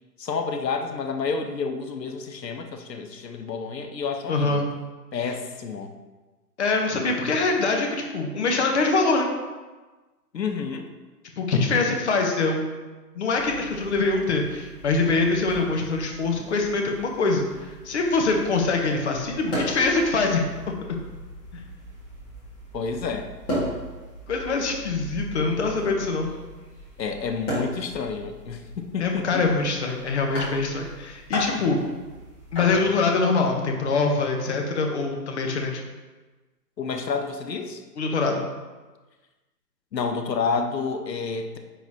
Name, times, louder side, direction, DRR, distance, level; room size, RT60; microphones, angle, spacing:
voice 1, 0.2-4.6 5.1-5.9 10.3-10.9 22.7-23.3 27.0-29.5 36.8-37.8 39.9-41.6, left 5 dB, 90° left, 5 dB, 1.0 m, -29 dB
voice 2, 4.3-4.7 6.6-9.3 11.4-12.6 13.1-20.4 20.9-21.0 21.5-21.6 24.3-26.3 29.0-31.8 32.5-35.8 38.0-38.4, left 3 dB, 45° left, 2 dB, 1.0 m, -24 dB
sound 1, 13.4-33.1, equal, 15° left, 1.7 m, -37 dB
9.6 x 4.0 x 2.7 m, 1.2 s
hypercardioid pair, 160°, 49 cm